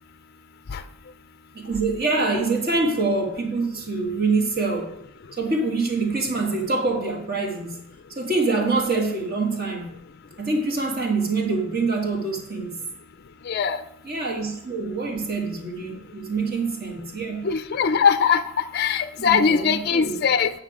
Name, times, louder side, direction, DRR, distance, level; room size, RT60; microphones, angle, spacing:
voice 1, 1.5-5.0 5.4-7.8 8.1-10.0 10.4-12.8 14.0-17.5 19.2-20.2, right 3 dB, 45° right, 2 dB, 1.6 m, -25 dB
voice 2, 13.5-13.8 17.4-18.4 18.7-20.5, left 6 dB, 45° left, 11 dB, 0.4 m, -21 dB
9.1 x 5.7 x 4.8 m, 0.75 s
head